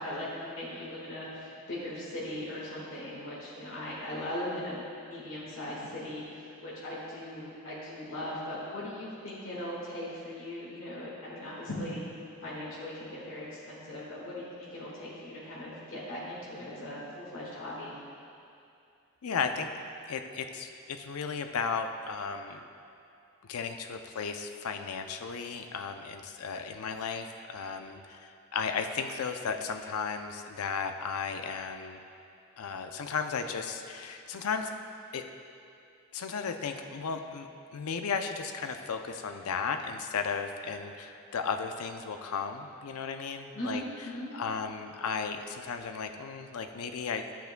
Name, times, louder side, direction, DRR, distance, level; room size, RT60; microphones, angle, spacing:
voice 1, 0.0-12.0 12.4-18.0 43.5-44.3, left 1 dB, 65° left, -7 dB, 1.7 m, -39 dB
voice 2, 19.2-19.7 20.1-22.6 23.4-32.0 32.6-34.7 35.1-35.2 36.1-43.8 44.3-47.3, left 5 dB, 80° left, 6 dB, 0.5 m, -35 dB
11.5 x 7.9 x 2.2 m, 2.6 s
head